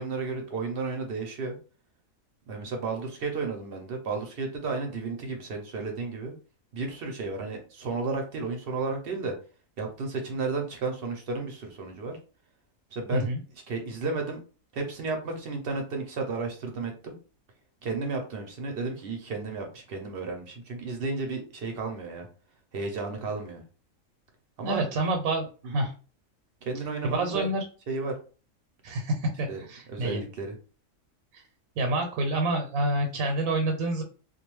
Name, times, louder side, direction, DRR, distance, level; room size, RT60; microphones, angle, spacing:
voice 1, 0.0-1.5 2.5-6.3 6.7-9.3 9.8-12.2 12.9-13.3 13.7-14.4 14.7-17.1 17.8-22.3 22.7-23.6 24.6-24.8 25.6-25.8 26.6-27.5 27.9-28.1 29.5-29.6 29.9-30.6, right 4 dB, 60° right, 3 dB, 0.7 m, -33 dB
voice 2, 24.6-25.9 27.0-27.6 28.8-30.2 31.3-31.4 31.8-34.0, right 2 dB, 85° right, 3 dB, 1.0 m, -28 dB
2.4 x 2.2 x 3.0 m, 0.37 s
omnidirectional pair, 1.4 m